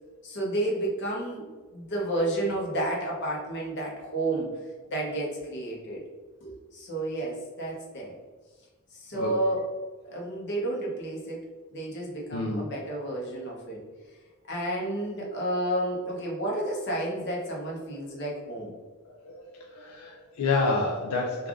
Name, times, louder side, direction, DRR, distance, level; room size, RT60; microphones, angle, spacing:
voice 1, 0.2-1.5 1.7-4.5 4.9-6.0 6.4-8.1 8.9-9.6 10.0-11.4 11.7-13.8 14.5-18.7, right 1 dB, 55° left, -2 dB, 0.9 m, -31 dB
voice 2, 12.3-12.7 19.2-21.5, left 3 dB, 85° left, 1 dB, 0.4 m, -29 dB
3.3 x 2.4 x 3.6 m, 1.3 s
head